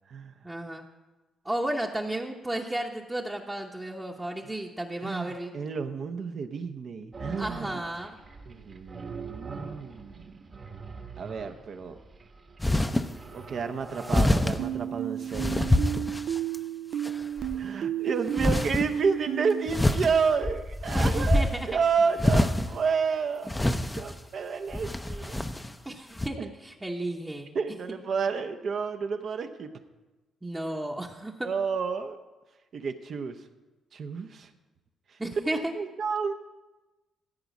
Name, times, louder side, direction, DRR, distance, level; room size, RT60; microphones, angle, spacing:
voice 1, 0.4-0.8 1.4-5.5 7.4-8.1 20.9-21.7 25.8-27.5 30.4-31.5 35.2-35.7, right 1 dB, 15° right, -1 dB, 0.9 m, -33 dB
voice 2, 5.0-7.8 8.5-10.5 11.2-12.0 13.3-15.8 17.5-25.4 26.4-26.5 27.5-29.7 31.4-32.2 32.7-33.4 33.9-34.5 35.1-35.2 35.5-36.3, right 5 dB, 55° right, 7 dB, 0.7 m, -30 dB
sound 1, 7.1-14.9, right 4 dB, 40° right, 1.2 m, -43 dB
sound 2, 12.6-13.1 14.1-14.6 15.3-16.6 17.0-17.6 18.4-18.9 19.7-21.8 22.2-22.7 23.5-24.2 24.7-25.7 26.2-26.3, left 1 dB, 10° left, 0.6 m, -25 dB
sound 3, 14.6-19.7, right 10 dB, 70° right, 0.3 m, -32 dB
14.5 x 4.8 x 8.2 m, 1.1 s
cardioid pair, 90°, 0 cm